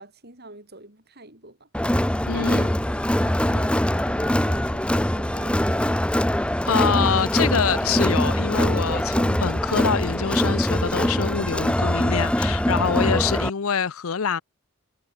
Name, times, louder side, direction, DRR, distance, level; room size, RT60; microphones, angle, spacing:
voice 1, 0.0-1.7 2.3-6.1, right 2 dB, 45° right, 6.3 m, -45 dB
Crowd, 1.7-13.5, equal, 5° left, 0.7 m, -23 dB
voice 2, 2.3-2.7 6.7-14.4, left 6 dB, 70° left, 0.7 m, -25 dB
head